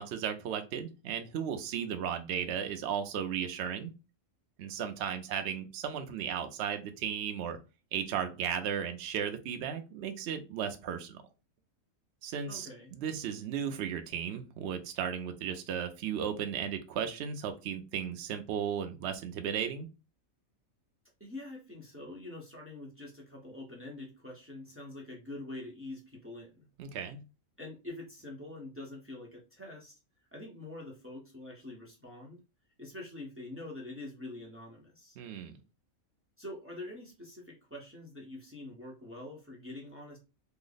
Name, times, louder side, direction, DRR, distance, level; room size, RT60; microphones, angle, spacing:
voice 1, 0.0-3.9 4.6-7.6 7.9-11.2 12.2-12.7 12.9-19.9 26.8-27.2 35.2-35.5, right 8 dB, 65° right, 6 dB, 0.7 m, -35 dB
voice 2, 12.5-13.0 21.2-26.7 27.6-30.0 30.3-32.4 32.8-35.2 36.4-40.2, left 2 dB, 15° right, -2 dB, 0.7 m, -45 dB
3.2 x 2.0 x 3.9 m, 0.30 s
omnidirectional pair, 1.5 m